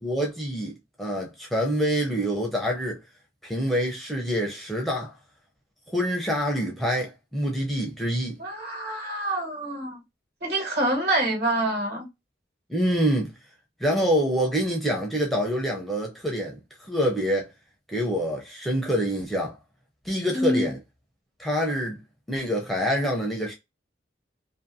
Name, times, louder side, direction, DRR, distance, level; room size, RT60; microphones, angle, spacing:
voice 1, 0.0-3.0 3.4-5.1 5.9-8.4 12.7-13.3 13.8-17.5 17.9-19.6 20.0-20.8 21.4-22.0 22.3-23.5, equal, ahead, 0.5 m, -26 dB
voice 2, 8.4-10.0 10.4-12.1 20.3-20.7, right 1 dB, 60° right, 1.3 m, -26 dB
2.6 x 2.5 x 2.6 m
head